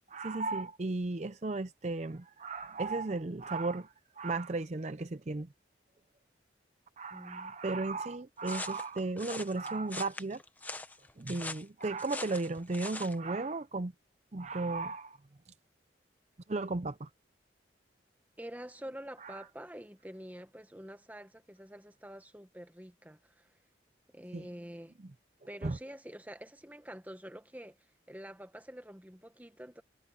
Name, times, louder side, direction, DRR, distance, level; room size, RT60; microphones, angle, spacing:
voice 1, 0.1-5.5 7.0-10.4 11.2-13.9 14.3-15.2 16.5-17.1 19.2-19.4 24.3-24.5 25.6-25.8, right 3 dB, 35° right, 0.5 m, -35 dB
voice 2, 7.1-7.5 18.4-23.5 24.1-24.9 25.5-27.8 28.1-29.8, equal, 10° right, 1.3 m, -47 dB
sound 1, 8.4-13.2, left 2 dB, 10° left, 1.0 m, -42 dB
head